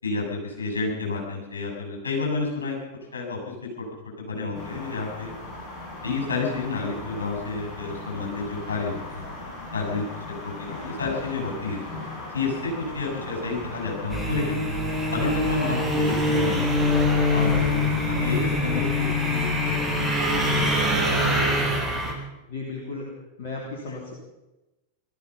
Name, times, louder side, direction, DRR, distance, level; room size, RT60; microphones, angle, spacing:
voice 1, 0.0-2.7 3.1-3.9 4.2-5.3 6.0-9.3 9.7-10.0 10.4-11.8 12.3-14.6 15.1-17.0 17.3-17.8 18.1-20.9 21.3-21.4 23.8-24.0, left 3 dB, 70° left, 0 dB, 6.6 m, -30 dB
sound 1, 4.5-21.8, left 2 dB, 25° left, 6.8 m, -37 dB
sound 2, 14.1-22.1, left 1 dB, 5° right, 3.7 m, -24 dB
voice 2, 22.5-23.0 23.4-24.1, left 3 dB, 55° left, -2 dB, 3.1 m, -34 dB
18.0 x 13.5 x 5.6 m, 1.0 s
figure-of-eight pair, 90°, 0 cm